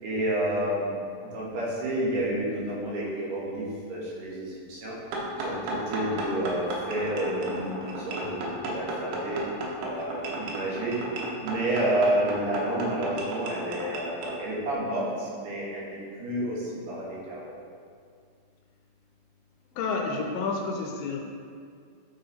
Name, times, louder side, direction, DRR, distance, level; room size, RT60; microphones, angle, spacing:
voice 1, 0.0-5.0 5.4-9.4 9.8-11.0 11.4-17.5, right 1 dB, 70° right, -6 dB, 2.7 m, -30 dB
sound 1, 5.1-14.4, right 2 dB, 85° right, 2.9 m, -34 dB
voice 2, 19.8-21.2, left 4 dB, 80° left, 1 dB, 2.3 m, -29 dB
9.3 x 4.0 x 4.2 m, 2.2 s
omnidirectional pair, 4.2 m